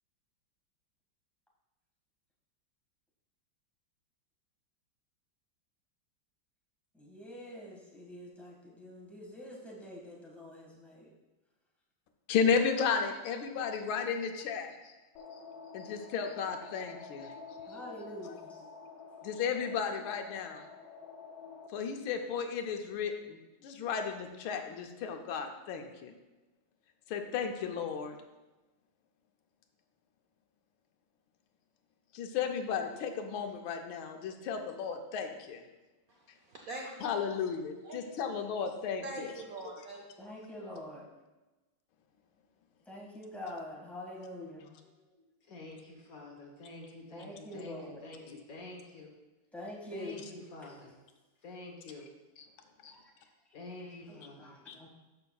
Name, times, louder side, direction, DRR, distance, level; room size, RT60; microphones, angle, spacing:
voice 1, 6.9-11.1 17.6-18.6 40.2-41.1 42.8-44.7 47.1-48.0 49.5-50.2 50.6-50.7 52.9-53.3 53.8-54.9, left 1 dB, ahead, -4 dB, 1.4 m, -46 dB
voice 2, 12.3-14.9 15.7-17.3 19.2-20.6 21.7-26.1 27.1-28.2 32.1-35.6 37.0-39.3 52.8-52.9 54.7-54.8, left 6 dB, 85° left, 5 dB, 1.6 m, -34 dB
sound 1, 15.2-21.7, left 5 dB, 70° left, 1.3 m, -49 dB
voice 3, 36.5-37.4 37.8-38.2 39.0-40.1, right 2 dB, 60° right, 0 dB, 0.9 m, -43 dB
voice 4, 44.8-49.1 49.9-51.0 51.4-52.1 53.5-54.6, left 2 dB, 50° left, 0 dB, 1.3 m, -48 dB
12.5 x 5.7 x 2.3 m, 1.1 s
omnidirectional pair, 2.2 m